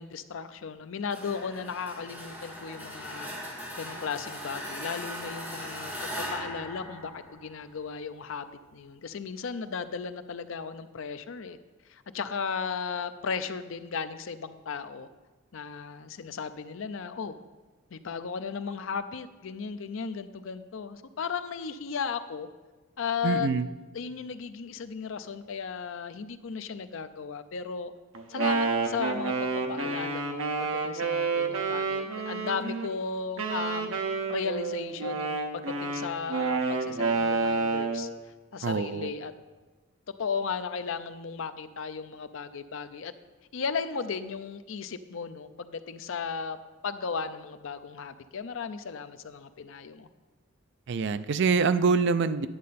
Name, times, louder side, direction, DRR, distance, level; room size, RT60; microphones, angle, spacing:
voice 1, 0.0-11.6 11.9-15.1 15.5-17.4 17.9-22.5 23.0-23.5 23.9-27.9 28.3-34.0 34.3-39.3 40.2-43.1 43.5-46.6 46.8-50.1, left 5 dB, 65° left, 11 dB, 0.5 m, -35 dB
sound 1, 1.1-7.8, equal, 10° right, 2.2 m, -39 dB
voice 2, 23.2-23.7 38.6-39.1 50.9-52.5, right 5 dB, 55° right, 13 dB, 0.4 m, -25 dB
Wind instrument woodwind instrument, 28.1-32.9 33.4-38.1, right 4 dB, 75° right, 0.9 m, -29 dB
10.5 x 7.5 x 4.1 m, 1.3 s
head